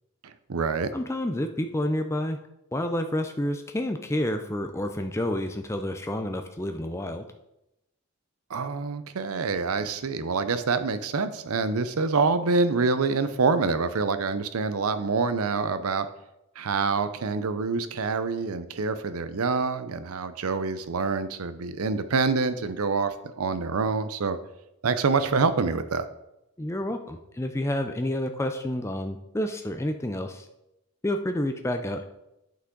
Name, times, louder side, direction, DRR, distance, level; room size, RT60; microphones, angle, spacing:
voice 1, 0.2-0.9 8.5-16.1 16.6-24.4 24.8-26.1, right 4 dB, 85° right, 12 dB, 0.6 m, -26 dB
voice 2, 0.9-2.4 2.7-7.3 26.6-30.5 31.0-32.0, left 1 dB, 10° left, 6 dB, 0.4 m, -29 dB
8.4 x 6.0 x 3.8 m, 0.87 s
head